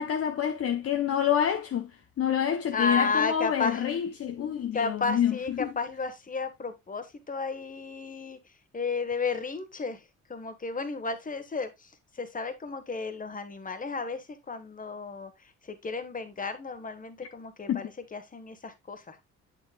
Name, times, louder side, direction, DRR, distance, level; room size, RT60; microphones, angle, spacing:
voice 1, 0.0-5.7 17.7-17.8, left 9 dB, 50° left, 0.8 m, -27 dB
voice 2, 2.7-3.8 4.7-8.4 8.7-10.0 10.3-15.3 15.6-19.2, left 4 dB, 25° left, 1.3 m, -33 dB
8.0 x 6.7 x 2.3 m
cardioid pair, 90°, 30 cm